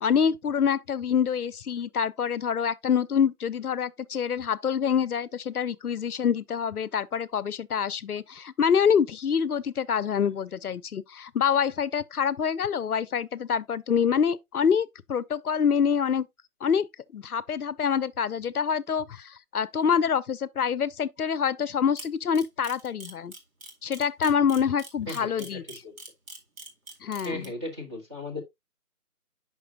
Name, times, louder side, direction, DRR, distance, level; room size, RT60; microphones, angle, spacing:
voice 1, 0.0-16.3 16.6-16.9 17.1-23.3 23.8-25.6 27.0-27.5, left 7 dB, 70° left, 0.6 m, -26 dB
Camera, 22.0-27.4, right 2 dB, 60° right, 2.1 m, -42 dB
voice 2, 25.0-26.0 27.2-28.4, left 2 dB, 20° right, 1.0 m, -36 dB
6.9 x 5.8 x 2.7 m
figure-of-eight pair, 165°, 46 cm